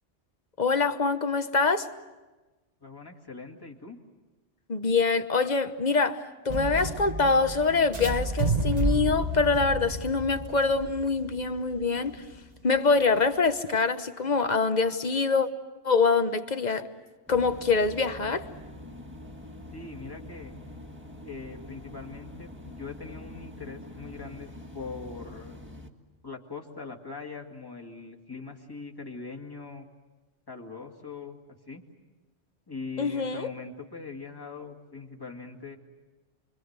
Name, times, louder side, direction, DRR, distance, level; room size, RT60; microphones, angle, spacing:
voice 1, 0.6-1.9 4.7-12.2 12.6-15.5 15.8-16.9 17.3-18.5 33.0-33.5, left 4 dB, 40° left, 1.1 m, -25 dB
voice 2, 2.8-4.0 19.7-20.6 21.2-25.6 26.2-29.9 30.5-31.4 31.7-31.8 32.7-35.8, left 4 dB, 20° left, 2.2 m, -41 dB
sound 1, 6.5-12.6, right 2 dB, 35° right, 1.3 m, -31 dB
sound 2, 17.3-25.9, left 1 dB, 10° right, 1.7 m, -45 dB
29.5 x 23.5 x 8.1 m
omnidirectional pair, 1.3 m